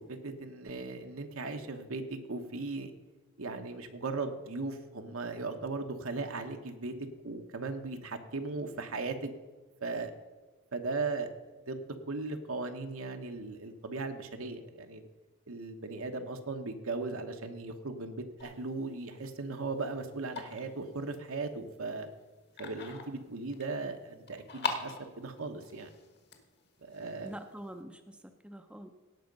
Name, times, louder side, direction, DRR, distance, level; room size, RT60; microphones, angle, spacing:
voice 1, 0.0-2.9 3.4-7.0 7.2-9.3 9.8-10.1 10.7-11.3 11.7-15.0 15.5-22.1 22.6-25.9 26.8-27.4, right 3 dB, 80° right, 6 dB, 1.2 m, -37 dB
sound 1, 18.4-27.8, left 5 dB, 50° left, 1.5 m, -44 dB
voice 2, 27.2-28.9, right 1 dB, 5° right, 6 dB, 0.6 m, -45 dB
17.5 x 5.8 x 5.3 m, 1.3 s
head